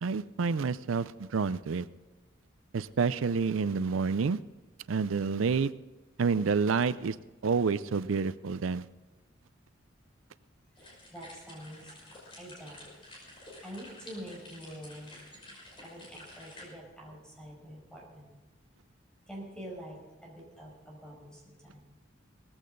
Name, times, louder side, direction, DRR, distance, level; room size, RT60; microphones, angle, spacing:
voice 1, 0.0-1.9 2.7-4.4 4.9-5.7 6.2-7.2 7.4-8.9, right 5 dB, 90° right, 15 dB, 0.5 m, -28 dB
sound 1, 10.8-16.6, left 1 dB, 25° left, 5.6 m, -50 dB
voice 2, 11.1-11.9 12.4-12.9 13.6-15.1 15.8-18.3 19.3-21.9, equal, 5° left, -2 dB, 5.4 m, -46 dB
18.0 x 15.0 x 3.9 m, 1.2 s
head